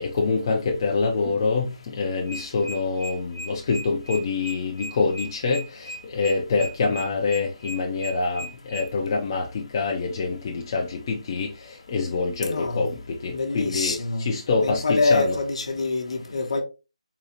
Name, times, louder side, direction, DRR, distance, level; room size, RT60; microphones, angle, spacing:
voice 1, 0.0-15.4, left 4 dB, 30° left, 0.5 m, -26 dB
sound 1, 2.3-8.9, equal, 65° right, 1.1 m, -36 dB
voice 2, 12.4-12.8 13.3-14.3 14.6-16.6, left 3 dB, 60° left, 0.9 m, -25 dB
3.8 x 2.4 x 2.9 m
figure-of-eight pair, 160°, 4 cm